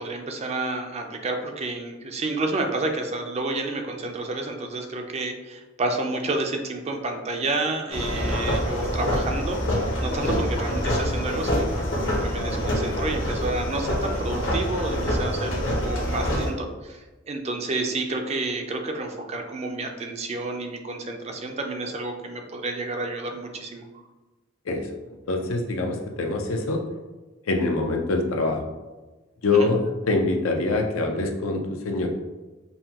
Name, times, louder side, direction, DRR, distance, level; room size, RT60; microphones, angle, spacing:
voice 1, 0.0-9.6 10.0-23.9 29.5-29.7, right 2 dB, 30° right, 4 dB, 0.4 m, -30 dB
sound 1, 7.9-16.5, equal, 65° left, 0.9 m, -26 dB
voice 2, 25.3-26.8 27.5-28.6 29.4-32.1, left 3 dB, 85° left, 3 dB, 0.6 m, -24 dB
5.5 x 2.2 x 2.8 m, 1.2 s
head